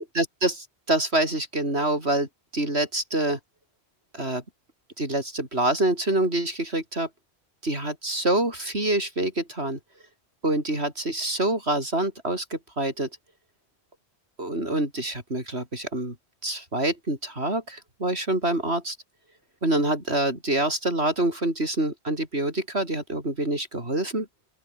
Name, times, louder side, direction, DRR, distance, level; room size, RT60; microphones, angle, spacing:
voice 1, 0.0-2.3 2.5-3.4 4.1-4.4 5.0-7.1 7.6-9.8 10.4-13.1 14.4-16.2 16.4-19.0 19.6-24.3, right 1 dB, 75° right, 6.9 m, -26 dB
open air
omnidirectional pair, 1.1 m